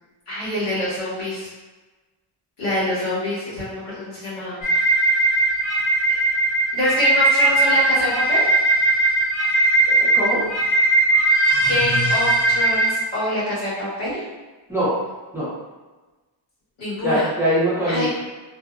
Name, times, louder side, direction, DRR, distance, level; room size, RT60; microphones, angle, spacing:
voice 1, 0.3-1.5 2.6-4.6 6.1-6.2 6.7-8.5 11.7-14.2 16.8-17.3 17.8-18.1, left 1 dB, 85° left, -9 dB, 1.5 m, -25 dB
sound 1, 4.6-12.9, right 2 dB, 70° left, 0.8 m, -19 dB
voice 2, 9.9-10.5 14.7-15.0 15.3-15.5 17.0-18.1, equal, 5° right, -11 dB, 0.6 m, -22 dB
2.7 x 2.0 x 2.4 m, 1.2 s
wide cardioid pair, 180°, 49 cm